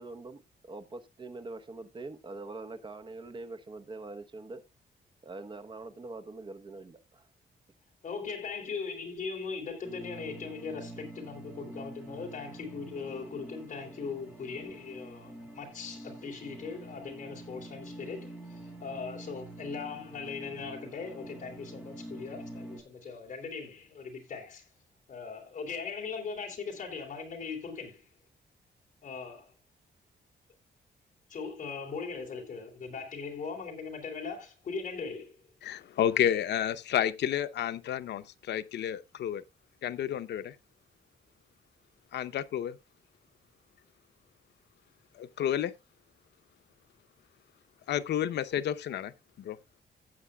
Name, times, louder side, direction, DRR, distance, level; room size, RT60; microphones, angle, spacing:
voice 1, 0.0-4.6 5.2-7.3, right 3 dB, 30° right, 0.9 m, -43 dB
voice 2, 8.0-24.7 25.1-28.1 29.0-29.5 31.3-35.4, left 5 dB, 45° left, 3.3 m, -39 dB
sound 1, 9.8-22.8, right 1 dB, 5° right, 5.1 m, -46 dB
voice 3, 35.6-39.4 39.8-40.5 42.1-42.8 45.1-45.7 47.9-49.1 49.4-49.6, left 10 dB, 85° left, 0.7 m, -30 dB
15.5 x 8.4 x 2.3 m
wide cardioid pair, 155°, 17 cm